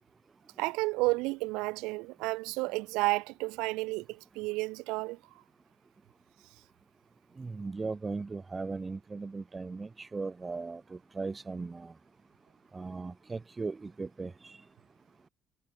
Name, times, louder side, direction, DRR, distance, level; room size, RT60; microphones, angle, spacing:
voice 1, 0.6-5.2, right 24 dB, 70° right, 5.5 m, -31 dB
voice 2, 7.4-11.9 12.7-14.6, right 4 dB, 25° right, 6.6 m, -38 dB
hypercardioid pair, 50°, 0 cm